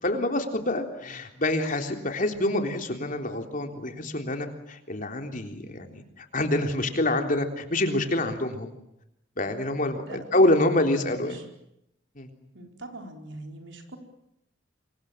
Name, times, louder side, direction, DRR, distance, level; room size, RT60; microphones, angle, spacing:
voice 1, 0.0-8.7 9.4-11.4 12.2-12.3, left 1 dB, 45° left, 5 dB, 3.7 m, -26 dB
voice 2, 10.1-11.4 12.5-14.0, right 2 dB, 80° right, 4 dB, 4.9 m, -42 dB
27.5 x 24.0 x 7.5 m, 0.79 s
head